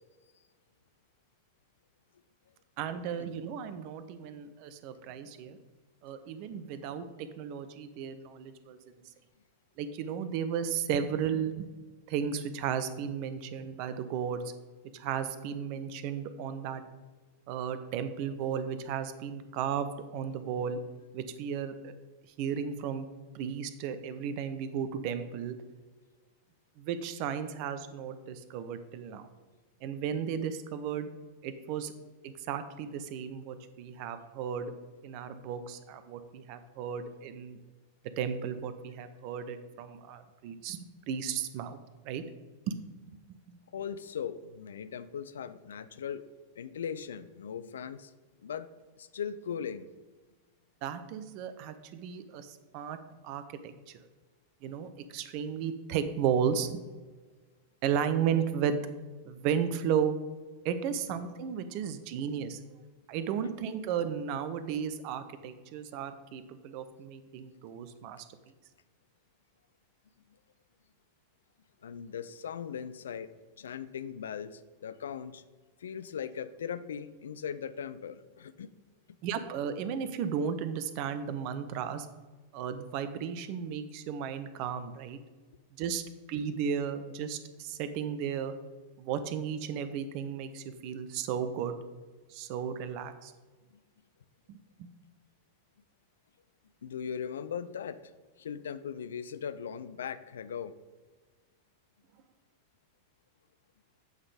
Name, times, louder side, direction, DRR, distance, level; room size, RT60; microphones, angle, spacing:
voice 1, 2.8-5.6 6.0-9.0 9.8-11.7 12.1-14.4 14.9-16.8 17.5-20.8 21.1-21.9 22.4-23.1 23.3-25.6 26.8-29.2 29.8-31.1 31.4-31.9 32.2-34.7 35.0-37.6 38.2-41.8 42.0-42.2 42.7-42.8 50.8-53.0 53.2-53.7 54.6-56.8 57.8-58.8 59.3-60.2 60.6-62.6 63.1-68.3 79.2-82.1 82.5-85.2 85.8-86.0 86.3-88.5 89.0-91.8 92.3-93.3 94.5-94.9, right 7 dB, 45° right, 11 dB, 0.6 m, -34 dB
voice 2, 43.7-46.2 46.6-48.1 48.4-48.7 49.0-49.9 71.8-73.3 73.6-75.4 75.8-78.7 96.8-98.0 98.4-100.7, left 7 dB, 65° left, 14 dB, 0.3 m, -39 dB
8.0 x 3.8 x 4.9 m, 1.3 s
figure-of-eight pair, 90°, 0 cm